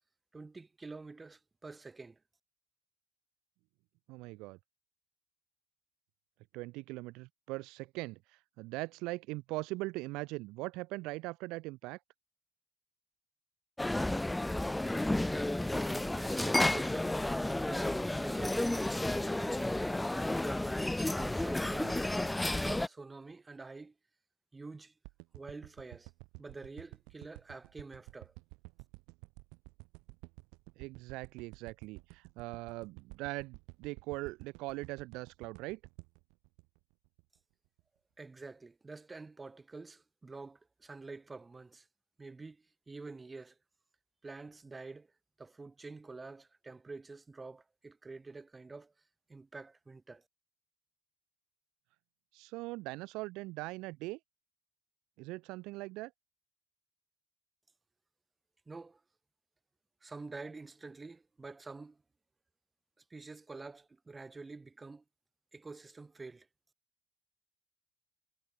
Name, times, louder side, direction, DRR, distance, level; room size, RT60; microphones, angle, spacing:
voice 1, 0.3-2.2 15.7-17.1 17.5-20.2 21.1-22.1 22.4-23.9 24.5-24.9 25.3-26.1 26.4-28.3 38.2-41.9 42.2-43.6 44.2-45.1 45.4-48.9 49.3-50.2 58.7-59.0 60.0-62.0 63.1-65.0 65.5-66.5, right 3 dB, 15° right, 4.5 m, -48 dB
voice 2, 4.1-4.6 6.5-12.0 21.8-21.9 30.8-35.8 52.3-54.2 55.2-56.1, right 22 dB, 70° right, 2.1 m, -41 dB
sound 1, 13.8-22.9, left 1 dB, 5° left, 0.5 m, -32 dB
sound 2, 25.0-37.4 37.8-37.9, right 32 dB, 85° right, 2.5 m, -52 dB
cardioid pair, 160°, 0 cm